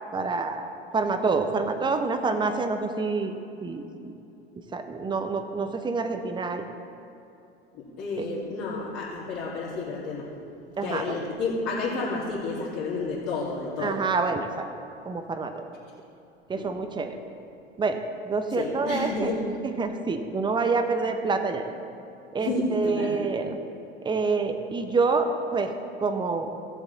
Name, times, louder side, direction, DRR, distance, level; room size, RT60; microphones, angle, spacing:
voice 1, 0.1-3.3 3.6-4.1 4.7-6.7 8.2-8.3 10.8-11.0 13.8-14.7 15.1-15.6 16.5-17.2 17.8-18.0 18.3-19.3 19.8-21.7 22.3-23.6 24.0-25.7 26.0-26.5, right 4 dB, 15° right, 7 dB, 0.8 m, -27 dB
voice 2, 7.7-10.3 10.8-14.0 16.5-16.7 18.5-19.4 22.4-23.2, left 3 dB, 50° left, -9 dB, 2.5 m, -31 dB
16.0 x 7.3 x 4.1 m, 2.8 s
figure-of-eight pair, 75°, 31 cm